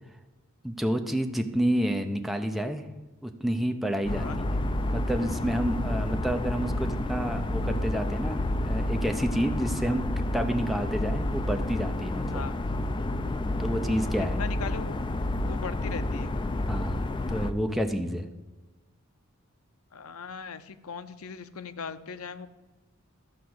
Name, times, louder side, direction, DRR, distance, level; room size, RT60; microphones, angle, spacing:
voice 1, 0.6-2.8 3.2-4.5 4.9-12.4 13.6-14.4 16.7-17.0 17.3-18.3, equal, ahead, 4 dB, 0.7 m, -29 dB
sound 1, 4.1-17.5, left 1 dB, 25° left, 0.4 m, -30 dB
voice 2, 14.2-15.0 15.4-16.3 19.9-22.5, left 5 dB, 85° left, 12 dB, 0.7 m, -39 dB
12.0 x 4.7 x 7.8 m, 1.2 s
head